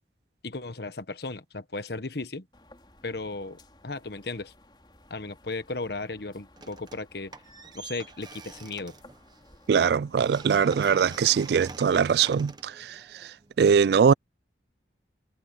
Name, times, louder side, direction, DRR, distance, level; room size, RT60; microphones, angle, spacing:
voice 1, 0.4-2.5 3.0-4.5 5.1-7.4 7.7-9.0, left 3 dB, 65° left, 1.3 m, -35 dB
sound 1, 2.5-11.3, left 1 dB, 25° left, 5.0 m, -56 dB
sound 2, 6.6-7.1 7.3-13.6, right 3 dB, 25° right, 1.1 m, -45 dB
voice 2, 9.7-14.1, right 6 dB, 65° right, 0.3 m, -22 dB
head